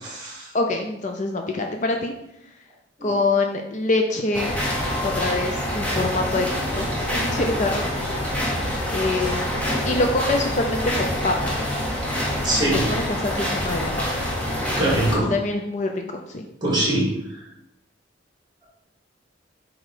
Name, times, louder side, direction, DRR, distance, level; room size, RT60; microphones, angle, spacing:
voice 1, 0.0-0.5 3.0-3.1 12.4-12.8 14.8-15.3 16.6-17.1, right 1 dB, 20° right, -4 dB, 2.4 m, -22 dB
voice 2, 0.5-2.1 3.0-4.5 5.0-6.5 6.7-8.2 8.9-11.5 12.7-14.1 15.3-16.5, left 2 dB, 40° left, 4 dB, 0.5 m, -25 dB
sound 1, 4.3-15.1, equal, 5° left, 1.1 m, -26 dB
7.4 x 3.1 x 4.9 m, 0.83 s
head